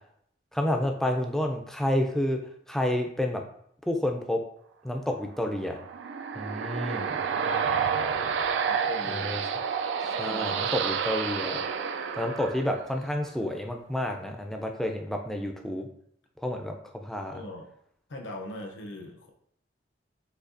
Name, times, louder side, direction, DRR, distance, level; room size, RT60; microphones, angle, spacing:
voice 1, 0.5-2.4 2.7-3.4 3.9-4.4 4.8-5.8 6.4-7.2 9.1-9.7 10.2-11.6 12.1-15.9 16.4-17.4, left 1 dB, ahead, 3 dB, 0.4 m, -30 dB
sound 1, 5.6-13.1, right 6 dB, 75° right, 0.3 m, -29 dB
voice 2, 8.7-9.4 10.0-10.9 12.5-12.6 17.3-17.7 18.1-19.3, left 2 dB, 75° left, 1 dB, 0.7 m, -41 dB
6.5 x 2.8 x 2.6 m, 0.69 s
head